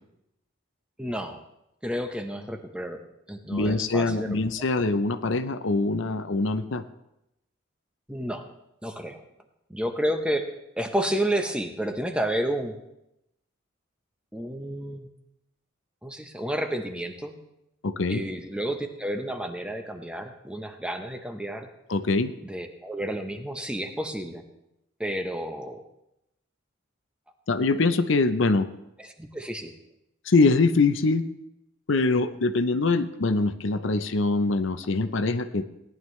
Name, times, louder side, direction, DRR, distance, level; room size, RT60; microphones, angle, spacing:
voice 1, 1.0-1.4 1.8-3.0 3.3-4.4 8.1-8.5 8.8-9.2 9.7-10.5 10.8-12.8 14.3-15.1 16.0-17.4 18.1-21.7 22.4-24.4 25.0-25.8 29.0-29.7, right 1 dB, 5° right, 5 dB, 0.8 m, -31 dB
voice 2, 3.5-6.8 17.8-18.2 21.9-22.3 27.5-28.7 30.3-31.2 31.9-35.7, left 3 dB, 70° left, 11 dB, 0.6 m, -23 dB
18.0 x 11.0 x 3.2 m, 0.85 s
head